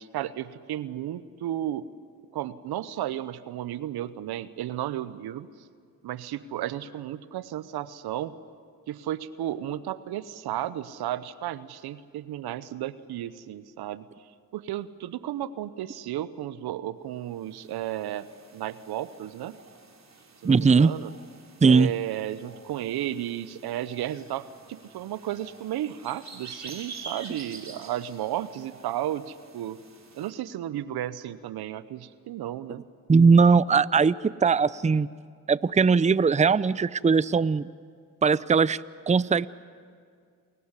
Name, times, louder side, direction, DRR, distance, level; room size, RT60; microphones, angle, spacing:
voice 1, 0.0-1.9 2.3-5.5 6.0-8.4 8.9-14.0 14.5-18.3 18.5-19.6 20.4-21.1 21.7-29.8 30.1-32.8, right 12 dB, 80° right, 16 dB, 0.8 m, -33 dB
sound 1, 17.3-30.3, right 4 dB, 45° right, 3.4 m, -48 dB
voice 2, 20.4-20.9 21.6-21.9 33.1-35.1 35.5-37.7 38.2-38.8 39.1-39.5, right 5 dB, 20° right, 19 dB, 0.6 m, -20 dB
28.5 x 15.5 x 9.8 m, 2.1 s
supercardioid pair, 40°, 38 cm